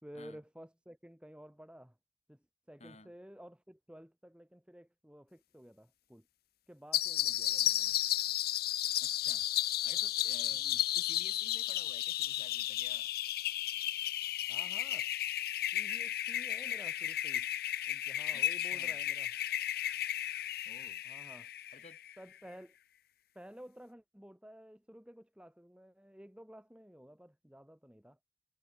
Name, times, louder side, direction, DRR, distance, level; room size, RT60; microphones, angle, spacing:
voice 1, 0.0-2.0 2.3-6.3 6.7-8.0 10.5-10.8 14.5-15.1 15.7-17.5 17.9-19.3 21.0-21.5 22.2-22.8 23.3-28.2, equal, 5° right, 1.0 m, -53 dB
voice 2, 2.8-3.1 9.0-9.5 9.8-10.7 10.9-13.1 18.3-19.0 20.7-21.0 21.7-22.0, left 3 dB, 35° left, 7.4 m, -54 dB
sound 1, 6.9-22.1, left 13 dB, 55° left, 0.7 m, -34 dB
head